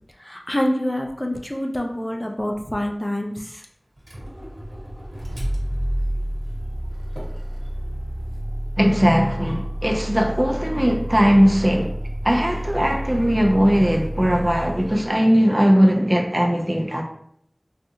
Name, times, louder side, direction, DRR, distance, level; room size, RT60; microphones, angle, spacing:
voice 1, 0.2-3.6, left 1 dB, 25° left, 0.5 m, -26 dB
Motor vehicle (road), 4.0-15.2, equal, 50° right, 1.1 m, -29 dB
voice 2, 8.8-11.9 12.2-17.0, equal, 30° right, 0.5 m, -19 dB
3.6 x 2.4 x 2.8 m
wide cardioid pair, 40°, 0 cm